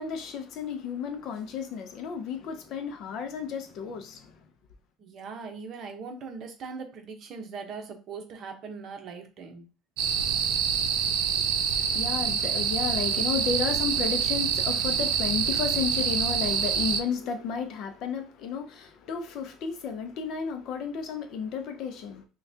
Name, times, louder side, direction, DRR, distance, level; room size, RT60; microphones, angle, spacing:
voice 1, 0.0-4.3 11.7-22.3, left 6 dB, 45° left, 0.6 m, -33 dB
voice 2, 5.0-9.7, right 5 dB, 35° right, 0.9 m, -40 dB
sound 1, 10.0-17.0, right 7 dB, 85° right, 0.6 m, -26 dB
5.6 x 2.3 x 2.7 m
cardioid pair, 180°, 0 cm